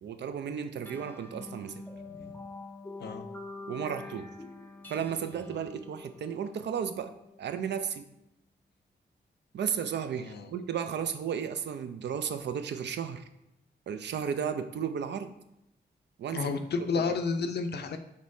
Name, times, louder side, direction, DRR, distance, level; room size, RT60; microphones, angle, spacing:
voice 1, 0.0-1.8 3.7-4.3 4.9-7.1 7.4-8.1 9.5-13.2 13.9-15.3 16.2-16.5, right 7 dB, 65° right, 9 dB, 0.4 m, -34 dB
sound 1, 0.8-7.7, left 3 dB, 10° left, 0.5 m, -46 dB
voice 2, 2.1-2.4 3.0-3.3 10.2-10.5 16.3-18.0, left 4 dB, 60° left, 7 dB, 0.5 m, -31 dB
5.2 x 3.1 x 2.7 m, 0.86 s
cardioid pair, 55°, 19 cm